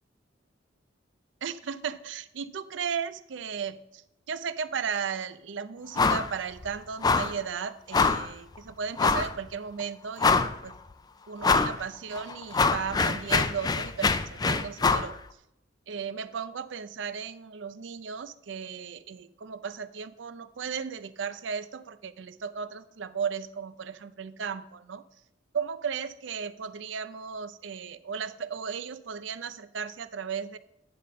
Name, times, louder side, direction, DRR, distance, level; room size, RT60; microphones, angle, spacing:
voice 1, 1.4-4.0 4.3-10.8 11.3-15.2 15.9-25.0 25.5-30.6, right 6 dB, 70° right, 14 dB, 0.5 m, -35 dB
sound 1, 6.0-6.3 6.6-6.7 7.0-7.4 7.9-8.3 9.0-9.3 9.8-9.9 10.2-10.7 11.4-11.8 12.1-15.1, left 4 dB, 20° left, 0.4 m, -24 dB
10.0 x 4.2 x 6.3 m, 0.81 s
head